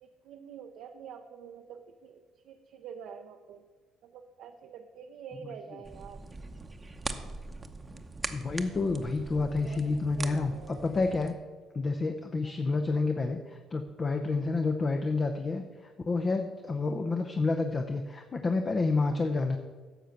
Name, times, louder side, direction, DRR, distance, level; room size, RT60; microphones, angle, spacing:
voice 1, 0.0-3.6 4.0-6.2 8.6-8.7 9.5-10.8 19.1-19.3, right 7 dB, 75° right, 4 dB, 0.6 m, -47 dB
sound 1, 5.8-11.3, right 3 dB, 25° right, 0.9 m, -41 dB
voice 2, 8.3-11.3 11.7-15.6 16.1-19.6, left 3 dB, 40° left, 5 dB, 0.8 m, -29 dB
10.5 x 6.5 x 5.8 m, 1.4 s
supercardioid pair, 60°, 0 cm